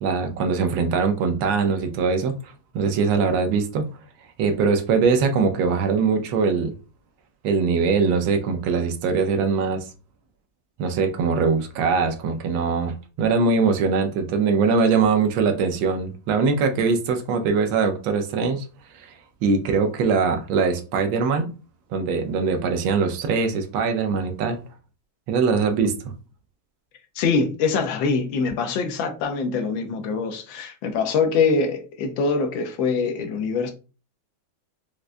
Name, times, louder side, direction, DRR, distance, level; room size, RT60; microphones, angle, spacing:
voice 1, 0.0-2.3 2.7-3.9 4.4-6.7 7.4-9.9 10.8-18.7 18.9-19.1 19.4-21.5 21.9-24.6 25.3-25.9, right 5 dB, 80° right, 1.4 m, -22 dB
voice 2, 27.2-33.7, left 4 dB, 80° left, 1.3 m, -24 dB
4.7 x 2.2 x 2.5 m
omnidirectional pair, 2.2 m